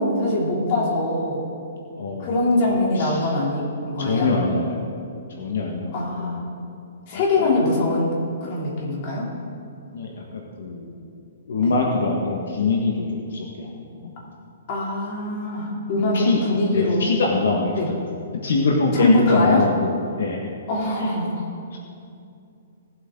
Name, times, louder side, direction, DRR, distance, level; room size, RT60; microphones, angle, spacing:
voice 1, 0.0-1.5 2.2-4.3 5.9-6.4 7.1-9.2 11.6-11.7 14.7-17.1 17.7-17.9 19.0-19.6 20.7-21.5, left 2 dB, 35° left, -4 dB, 3.1 m, -23 dB
voice 2, 2.0-2.6 2.9-3.3 4.0-4.8 5.4-6.3 7.1-7.6 9.9-10.9 11.5-14.1 16.1-16.4 16.7-18.0 18.4-19.9 20.2-20.5 21.0-21.1, left 3 dB, 75° left, -1 dB, 1.6 m, -24 dB
18.0 x 8.0 x 3.8 m, 2.5 s
hypercardioid pair, 160°, 0 cm